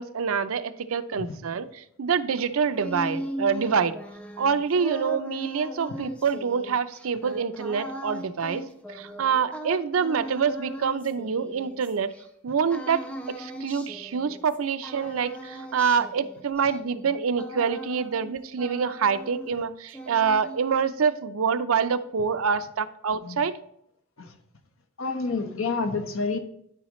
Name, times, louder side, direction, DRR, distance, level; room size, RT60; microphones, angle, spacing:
voice 1, 0.0-4.0 4.4-8.6 8.9-12.1 12.4-13.0 13.4-23.5, right 6 dB, 85° right, 11 dB, 0.5 m, -26 dB
sound 1, 2.4-12.2 12.7-14.6 14.8-18.3 18.6-19.6 19.9-20.9, right 1 dB, 5° left, 0.8 m, -38 dB
voice 2, 25.0-26.4, left 4 dB, 80° left, 7 dB, 1.1 m, -28 dB
11.5 x 4.9 x 3.1 m, 0.73 s
head